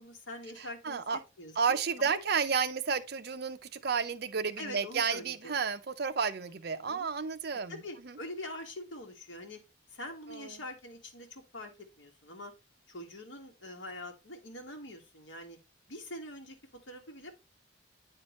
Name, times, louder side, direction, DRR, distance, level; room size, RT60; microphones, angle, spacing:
voice 1, 0.0-1.0 1.4-2.2 4.6-5.5 6.7-7.1 7.7-9.6 9.9-11.7 12.0-12.5 12.9-15.6 15.9-16.6 16.9-17.3, left 1 dB, 75° left, 1.6 m, -44 dB
voice 2, 0.6-1.2 1.6-8.2 10.3-10.6, right 5 dB, 55° right, 0.6 m, -32 dB
8.8 x 4.7 x 3.0 m
head